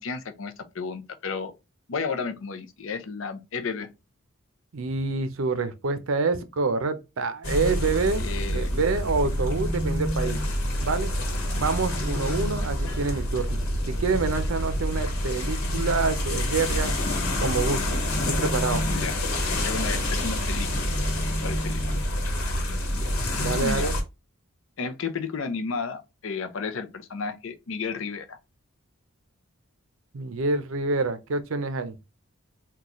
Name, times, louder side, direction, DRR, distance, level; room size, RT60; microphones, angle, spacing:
voice 1, 0.0-1.5 1.9-3.9 8.2-8.8 18.9-19.2 19.6-21.0 21.4-22.0 23.3-23.9 24.8-28.4, left 5 dB, 60° left, 0.6 m, -33 dB
voice 2, 4.7-8.2 8.5-10.4 10.8-11.1 11.6-17.0 17.4-18.8 23.4-24.0 30.1-32.0, right 4 dB, 65° right, 0.5 m, -27 dB
sound 1, 7.4-24.0, left 1 dB, 80° left, 1.2 m, -27 dB
3.8 x 2.3 x 2.9 m
head